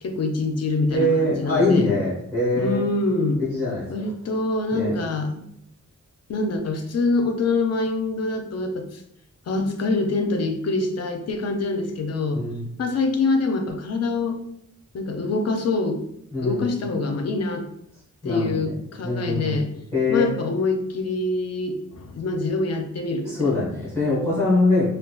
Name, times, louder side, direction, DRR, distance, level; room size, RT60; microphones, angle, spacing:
voice 1, 0.0-1.9 2.5-3.4 3.9-5.4 6.3-9.0 9.5-12.4 12.8-14.4 14.9-16.0 16.4-17.7 18.2-19.7 20.1-23.5, left 3 dB, 55° left, 5 dB, 0.5 m, -25 dB
voice 2, 0.9-2.9 3.4-3.8 4.7-5.0 12.3-12.6 16.3-16.7 18.2-18.7 19.0-19.6 19.9-20.3 23.2-24.9, left 2 dB, 10° left, -11 dB, 1.3 m, -23 dB
3.7 x 2.3 x 2.3 m, 0.73 s
wide cardioid pair, 175°, 31 cm